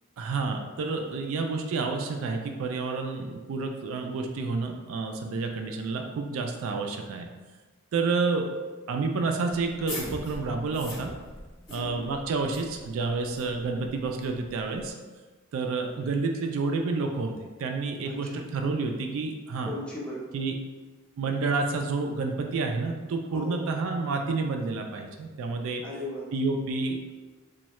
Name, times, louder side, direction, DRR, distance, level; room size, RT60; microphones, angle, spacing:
voice 1, 0.2-7.3 7.9-8.5 8.9-11.1 11.7-14.9 15.5-17.3 17.6-19.7 20.3-20.5 21.2-25.8 26.3-27.1, right 3 dB, 65° right, 4 dB, 0.3 m, -29 dB
sound 1, 9.6-14.9, left 1 dB, 65° left, 1.0 m, -43 dB
voice 2, 11.7-12.0 18.0-18.4 19.6-20.3 23.3-23.6 25.8-26.3, left 1 dB, 5° left, -6 dB, 0.6 m, -38 dB
3.0 x 2.3 x 2.9 m, 1.3 s
head